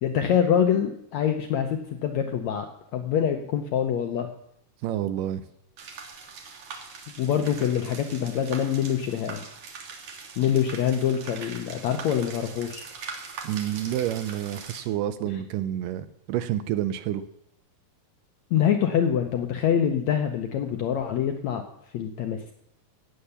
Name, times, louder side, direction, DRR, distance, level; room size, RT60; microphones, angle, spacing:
voice 1, 0.0-4.3 7.2-9.4 10.4-12.8 18.5-21.6 21.9-22.5, left 9 dB, 75° left, 6 dB, 1.7 m, -25 dB
voice 2, 4.8-5.4 13.4-17.2, right 12 dB, 80° right, 13 dB, 2.1 m, -29 dB
sound 1, 5.8-14.8, right 5 dB, 55° right, 2.7 m, -42 dB
16.5 x 7.8 x 7.0 m, 0.75 s
omnidirectional pair, 4.2 m